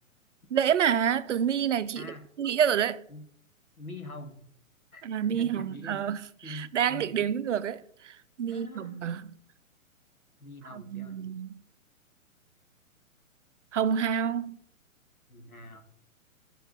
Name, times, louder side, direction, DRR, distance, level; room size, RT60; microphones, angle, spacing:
voice 1, 0.5-2.1 2.4-3.0 5.0-6.2 6.5-9.3 10.7-11.5 13.7-14.6, right 8 dB, 60° right, 0.6 m, -28 dB
voice 2, 1.9-2.3 3.1-3.3 3.8-4.4 4.9-5.0 5.3-6.2 6.4-7.3 8.5-9.1 10.4-11.2 15.3-15.8, left 2 dB, 85° left, 1.4 m, -44 dB
9.9 x 4.6 x 4.0 m
figure-of-eight pair, 120°, 42 cm